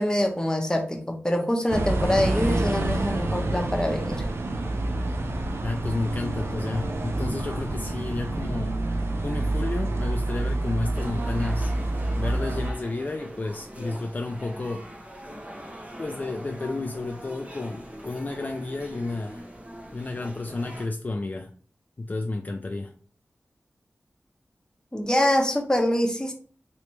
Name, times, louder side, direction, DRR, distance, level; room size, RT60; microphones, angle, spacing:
voice 1, 0.0-4.2 24.9-26.3, left 1 dB, 15° left, 3 dB, 0.8 m, -24 dB
sound 1, 1.7-12.7, right 2 dB, 65° right, 0.5 m, -28 dB
voice 2, 5.6-8.8 9.2-11.7 12.2-14.9 16.0-19.5 19.9-21.5 22.0-22.9, left 2 dB, 40° left, 4 dB, 0.4 m, -31 dB
sound 2, 10.9-20.9, equal, 30° right, 0.9 m, -42 dB
3.1 x 3.0 x 3.0 m, 0.43 s
cardioid pair, 50°, 5 cm